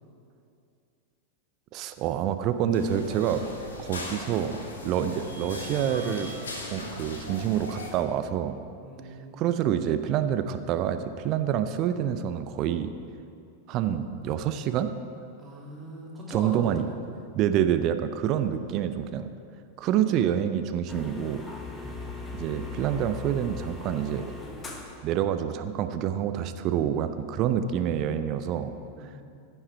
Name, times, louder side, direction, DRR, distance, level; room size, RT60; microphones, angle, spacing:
voice 1, 1.7-3.4 3.8-4.5 4.8-6.3 6.7-8.6 9.3-12.9 13.7-14.9 16.3-16.8 17.3-19.3 19.8-21.4 22.3-24.3 25.0-28.7, right 10 dB, 40° right, 10 dB, 0.5 m, -27 dB
sound 1, 2.7-7.9, left 1 dB, 70° left, 1.3 m, -38 dB
voice 2, 8.8-9.6 15.4-17.2 18.4-18.8 21.7-22.1 28.9-29.2, right 1 dB, 10° right, -5 dB, 2.4 m, -41 dB
sound 2, 20.9-25.0, left 4 dB, 20° left, 1.1 m, -39 dB
14.5 x 5.6 x 4.5 m, 2.5 s
figure-of-eight pair, 90°, 0 cm